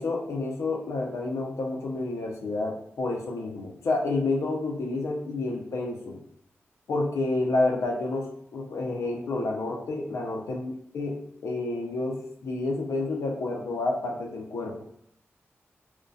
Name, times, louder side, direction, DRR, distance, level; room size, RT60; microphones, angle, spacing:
voice 1, 0.0-6.2 6.9-8.3 8.5-11.2 11.4-14.8, left 2 dB, 85° left, 1 dB, 0.5 m, -29 dB
2.2 x 2.1 x 2.5 m, 0.72 s
wide cardioid pair, 110°, 5 cm